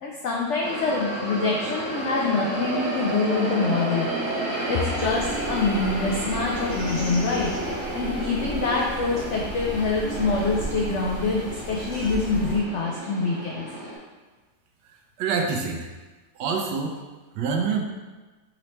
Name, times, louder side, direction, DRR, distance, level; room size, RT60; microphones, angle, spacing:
voice 1, 0.0-4.1 4.7-7.5 7.9-13.7, left 3 dB, 90° left, -2 dB, 0.6 m, -25 dB
sound 1, 0.6-14.0, right 1 dB, 40° right, 1.3 m, -31 dB
sound 2, 5.0-12.6, equal, 50° left, 1.3 m, -36 dB
voice 2, 14.8-15.9 16.3-17.0 17.3-17.8, right 5 dB, 80° right, 2 dB, 1.2 m, -26 dB
4.2 x 4.0 x 3.1 m, 1.3 s
omnidirectional pair, 1.9 m